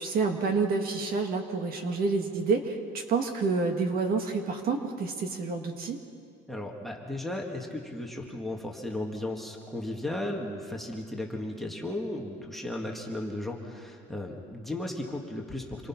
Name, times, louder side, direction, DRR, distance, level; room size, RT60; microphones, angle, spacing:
voice 1, 0.0-6.0, right 4 dB, 45° right, 4 dB, 1.9 m, -28 dB
voice 2, 6.5-15.9, left 1 dB, ahead, 1 dB, 1.8 m, -35 dB
27.5 x 22.5 x 5.9 m, 2.2 s
cardioid pair, 170°, 21 cm